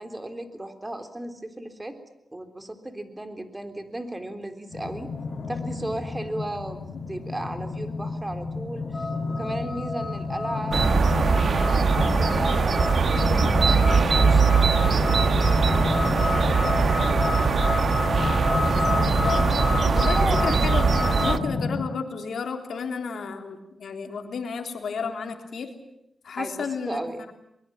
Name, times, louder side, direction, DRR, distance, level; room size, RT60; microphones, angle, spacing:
voice 1, 0.0-2.0 2.3-5.1 5.5-6.8 7.1-9.1 9.4-16.3 16.9-17.5 20.1-20.5 26.4-27.2, right 1 dB, 20° right, 7 dB, 3.7 m, -35 dB
sound 1, 4.7-21.8, left 3 dB, 60° left, 6.2 m, -30 dB
sound 2, 8.9-21.3, left 2 dB, 25° left, 5.4 m, -31 dB
sound 3, 10.7-21.4, right 5 dB, 65° right, 1.4 m, -21 dB
voice 2, 18.9-19.4 19.9-20.2 20.4-25.7 26.2-27.0, left 5 dB, 80° left, 4 dB, 3.4 m, -32 dB
23.5 x 21.5 x 8.9 m, 0.79 s
cardioid pair, 65°, 0 cm